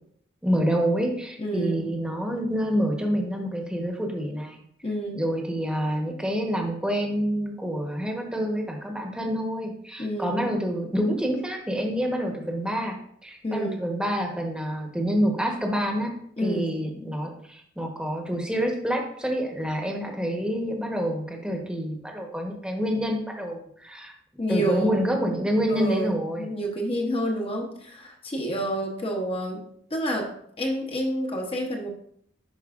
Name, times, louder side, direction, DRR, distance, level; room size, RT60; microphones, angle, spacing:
voice 1, 0.4-4.6 5.1-13.0 13.2-16.1 16.4-24.1 24.5-26.5, equal, 5° right, 2 dB, 1.0 m, -27 dB
voice 2, 1.4-1.9 4.8-5.2 10.0-10.5 13.4-13.8 16.4-16.7 24.4-25.0 25.7-30.3 30.6-31.9, right 1 dB, 30° left, 1 dB, 0.9 m, -29 dB
10.5 x 4.5 x 2.5 m, 0.67 s
head